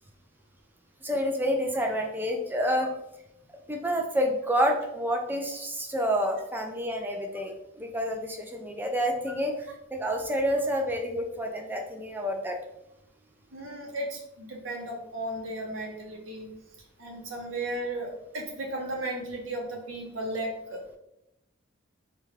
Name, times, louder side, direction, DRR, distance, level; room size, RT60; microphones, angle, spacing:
voice 1, 1.0-2.9 3.7-12.6, equal, 10° right, 2 dB, 0.3 m, -28 dB
voice 2, 13.5-16.5 17.0-20.8, right 1 dB, 75° right, -1 dB, 0.9 m, -35 dB
3.5 x 2.2 x 3.2 m, 0.85 s
head